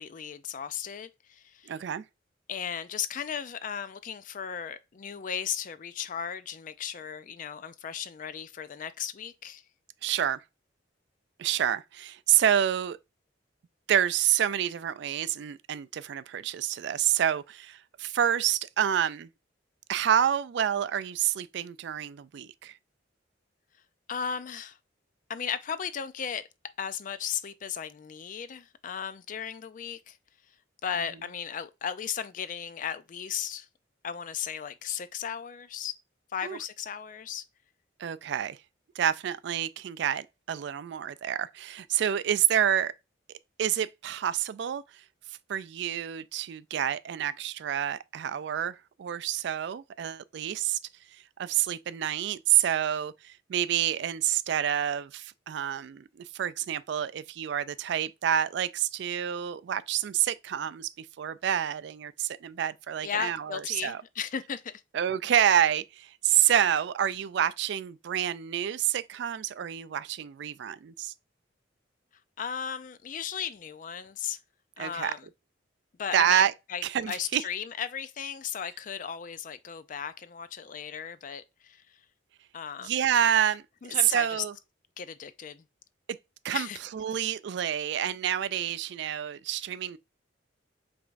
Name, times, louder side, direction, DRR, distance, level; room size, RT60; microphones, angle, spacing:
voice 1, 0.0-1.7 2.5-9.6 24.1-24.8 25.3-26.5 26.8-30.2 30.8-33.7 34.0-35.9 36.3-37.4 63.0-64.8 72.4-74.4 74.8-75.3 76.0-81.8 82.5-82.9 83.8-84.4 85.0-85.6 86.5-86.8, left 8 dB, 45° left, 0.4 m, -36 dB
voice 2, 1.7-2.0 10.0-10.4 11.4-13.0 13.9-19.3 19.9-22.8 36.4-36.6 38.0-38.6 39.0-42.9 43.6-45.0 45.5-50.8 51.1-64.0 64.9-71.1 74.8-75.1 76.1-76.5 76.8-77.4 82.8-84.5 86.4-86.7 86.9-90.0, right 10 dB, 60° right, 0.3 m, -28 dB
4.9 x 3.5 x 2.5 m
head